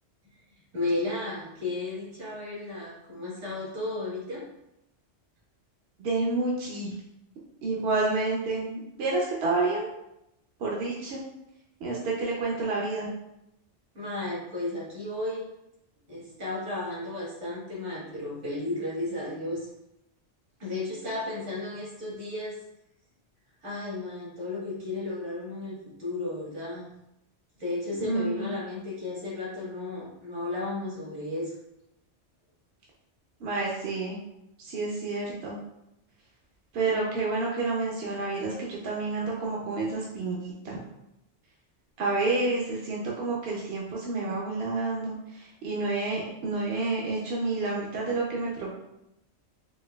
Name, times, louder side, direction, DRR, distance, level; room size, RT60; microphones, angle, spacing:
voice 1, 0.7-4.4 13.9-15.5 16.1-19.7 20.6-22.6 23.6-26.9 27.6-31.5, left 2 dB, 85° right, -7 dB, 1.7 m, -34 dB
voice 2, 6.0-6.9 7.6-9.9 10.6-11.2 11.8-13.1 28.0-28.4 33.4-34.2 34.6-35.6 36.7-40.8 42.0-48.7, right 3 dB, 65° right, -3 dB, 0.8 m, -29 dB
4.3 x 2.6 x 2.2 m, 0.86 s
omnidirectional pair, 1.2 m